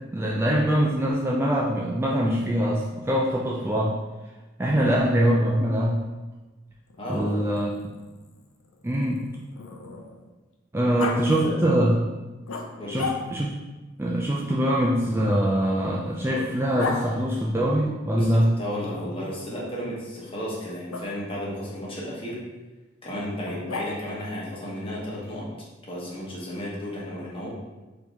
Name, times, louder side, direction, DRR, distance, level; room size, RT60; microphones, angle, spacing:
voice 1, 0.1-4.0 4.6-6.0 7.1-7.9 8.8-9.2 10.7-12.1 12.9-13.5 14.0-18.6, equal, 10° right, -3 dB, 0.3 m, -23 dB
Growling, 6.9-10.3 11.0-11.2 12.5-13.6 14.9-17.0 18.9-19.6 20.9-21.1 23.4-24.2, left 4 dB, 85° left, 0.5 m, -36 dB
voice 2, 7.0-7.6 10.8-11.1 11.4-11.7 12.8-13.0 18.1-22.4 23.0-25.5 25.9-27.5, left 1 dB, 30° left, -5 dB, 1.1 m, -33 dB
4.4 x 2.8 x 3.3 m, 1.2 s
head